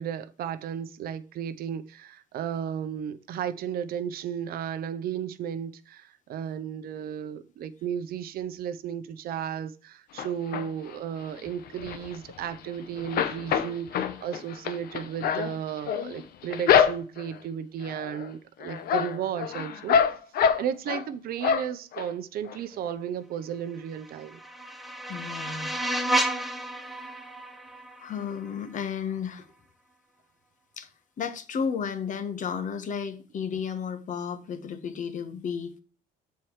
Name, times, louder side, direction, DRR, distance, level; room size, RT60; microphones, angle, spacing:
voice 1, 0.0-20.0 20.6-24.4, right 8 dB, 65° right, 0.7 m, -34 dB
sound 1, 10.2-10.9 11.4-12.7 13.0-17.4 17.8-18.3 18.6-21.1 21.4-22.1 22.5-22.6 22.8-22.9, left 7 dB, 65° left, 0.8 m, -26 dB
sound 2, 23.9-28.9, right 1 dB, ahead, 0.8 m, -32 dB
voice 2, 25.1-25.7 28.0-29.4 30.8-30.9 31.2-35.8, left 6 dB, 50° left, 1.2 m, -33 dB
7.3 x 4.5 x 4.5 m
cardioid pair, 110°, 17 cm